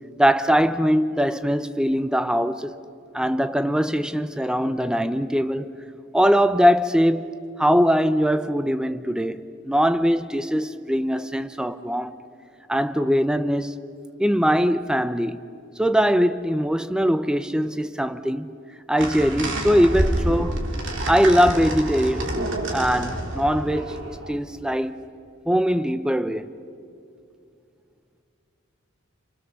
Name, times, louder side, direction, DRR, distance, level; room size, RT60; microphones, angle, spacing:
voice 1, 0.2-2.7 3.1-5.7 6.1-12.1 12.7-13.8 14.2-15.4 15.8-18.5 18.9-20.6 21.1-25.0 25.5-26.5, equal, 5° right, 0.6 m, -21 dB
sound 1, 19.0-24.3, right 1 dB, 55° right, 2.6 m, -28 dB
29.0 x 28.0 x 7.0 m
head